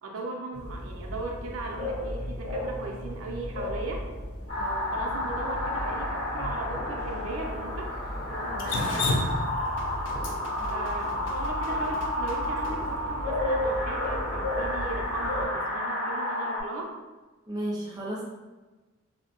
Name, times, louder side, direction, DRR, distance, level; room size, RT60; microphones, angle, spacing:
voice 1, 0.0-4.1 4.9-7.9 8.3-9.1 10.7-16.9, right 2 dB, 80° right, 0 dB, 0.4 m, -37 dB
sound 1, 0.5-15.5, left 1 dB, 75° left, 0.8 m, -35 dB
sound 2, 4.5-16.6, left 1 dB, 40° left, 0.7 m, -32 dB
voice 2, 4.6-4.9 8.5-8.8 10.6-10.9 17.5-18.2, right 1 dB, 20° right, -4 dB, 0.5 m, -35 dB
Drip, 8.6-12.7, left 2 dB, 60° left, 0.3 m, -31 dB
2.6 x 2.1 x 2.9 m, 1.2 s
head